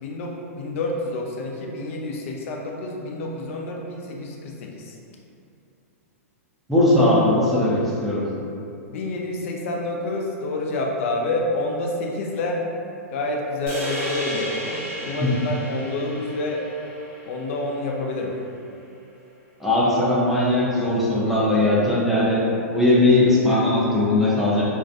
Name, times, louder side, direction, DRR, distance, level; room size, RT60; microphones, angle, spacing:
voice 1, 0.0-5.0 8.9-12.6 13.1-16.7 17.2-18.3, left 2 dB, 55° left, 0 dB, 0.4 m, -28 dB
voice 2, 6.7-8.3 15.0-15.3 19.6-22.4 22.7-24.6, left 1 dB, ahead, -9 dB, 0.5 m, -19 dB
sound 1, 13.7-18.1, equal, 25° right, 1.1 m, -33 dB
2.4 x 2.2 x 2.4 m, 2.6 s
hypercardioid pair, 125°, 8 cm